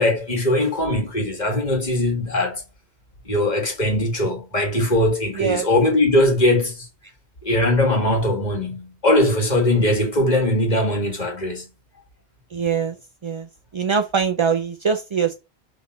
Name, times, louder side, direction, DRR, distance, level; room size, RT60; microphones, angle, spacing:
voice 1, 0.0-2.6 3.3-6.9 7.4-11.7, left 1 dB, 40° left, 1.9 m, -20 dB
voice 2, 12.5-12.9 13.2-13.5 13.7-15.3, right 6 dB, 35° right, 0.5 m, -22 dB
5.8 x 4.0 x 6.1 m
omnidirectional pair, 1.1 m